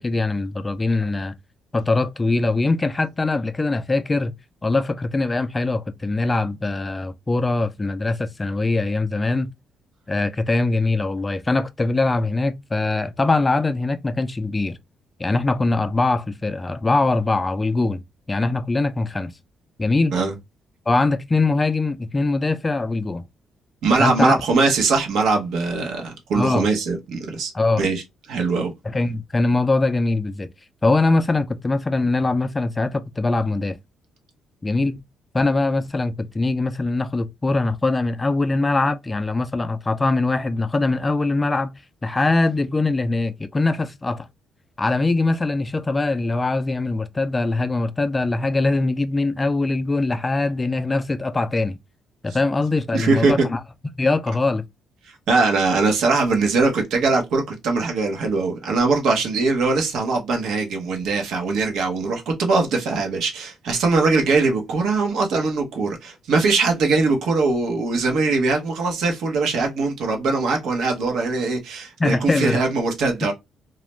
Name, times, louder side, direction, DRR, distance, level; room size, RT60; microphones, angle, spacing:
voice 1, 0.0-1.3 1.7-4.3 4.6-9.5 10.1-14.8 15.2-18.0 18.3-19.3 19.8-20.2 20.9-23.2 24.0-24.3 26.3-26.7 27.5-27.8 28.8-30.5 30.8-33.8 34.6-35.0 35.3-41.7 42.0-44.3 44.8-51.8 52.2-53.6 54.0-54.7 72.0-72.6 73.2-73.3, left 3 dB, 20° left, 0.3 m, -22 dB
voice 2, 23.8-27.5 27.8-28.0 28.3-28.7 52.9-53.3 55.3-73.3, right 3 dB, 80° right, 0.8 m, -21 dB
2.3 x 2.1 x 3.0 m
cardioid pair, 90°, 0 cm